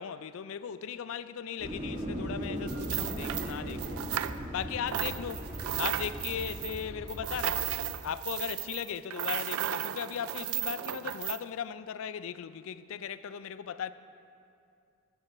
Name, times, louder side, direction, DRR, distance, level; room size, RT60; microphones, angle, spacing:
voice 1, 0.0-4.0 4.5-7.6 8.0-13.9, left 8 dB, 65° left, 0.3 m, -37 dB
sound 1, 1.6-7.9, equal, 30° right, 2.0 m, -38 dB
sound 2, 2.7-4.6 4.9-11.4, right 12 dB, 70° right, 0.3 m, -35 dB
12.5 x 5.3 x 6.0 m
head